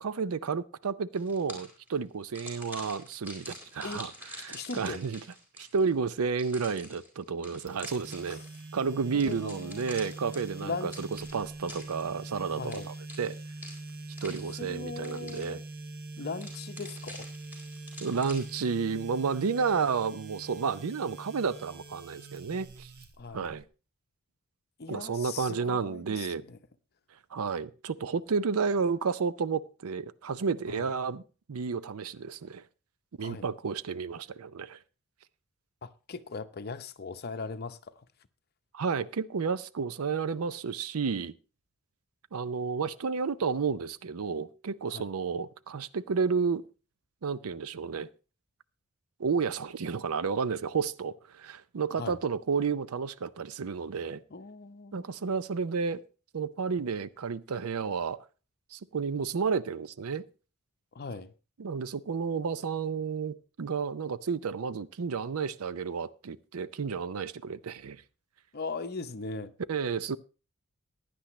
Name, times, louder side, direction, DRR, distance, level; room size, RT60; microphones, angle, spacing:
voice 1, 0.0-4.1 4.4-5.2 5.6-8.4 8.7-12.8 13.2-13.3 14.2-15.6 18.0-22.9 23.3-23.6 24.9-26.4 27.3-31.2 31.5-32.6 33.2-34.8 38.7-41.3 42.3-46.6 47.2-48.1 49.2-54.2 54.9-56.0 56.3-58.2 58.7-60.2 61.6-68.0 69.7-70.2, right 5 dB, 80° right, 0.5 m, -31 dB
sound 1, 1.2-1.9 2.3-5.9 6.4-8.7 9.2-12.3 12.7-14.8 15.0-15.7 16.4-18.7, left 1 dB, 10° right, 4.2 m, -47 dB
voice 2, 4.5-5.0 8.3-8.4 9.1-9.9 10.6-11.0 12.5-12.9 14.6-15.6 16.2-17.3 23.2-23.6 24.8-26.6 30.7-30.9 33.2-33.4 35.8-38.1 44.9-45.1 52.0-52.2 54.3-55.1 60.9-61.3 68.5-69.5, left 4 dB, 45° left, 0.7 m, -39 dB
sound 2, 7.7-23.6, right 2 dB, 45° right, 1.4 m, -44 dB
16.0 x 10.0 x 3.1 m
head